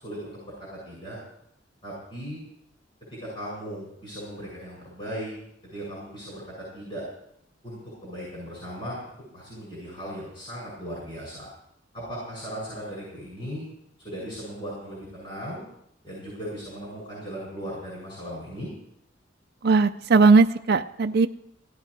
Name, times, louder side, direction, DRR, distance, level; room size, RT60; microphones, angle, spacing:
voice 1, 0.0-1.2 1.8-2.4 3.2-5.3 5.6-7.0 7.6-9.0 9.3-11.5 11.9-13.6 14.0-15.6 16.0-18.7, equal, 30° left, -5 dB, 7.1 m, -37 dB
voice 2, 19.6-21.3, right 4 dB, 55° right, 6 dB, 0.5 m, -18 dB
17.5 x 12.5 x 4.9 m, 0.76 s
head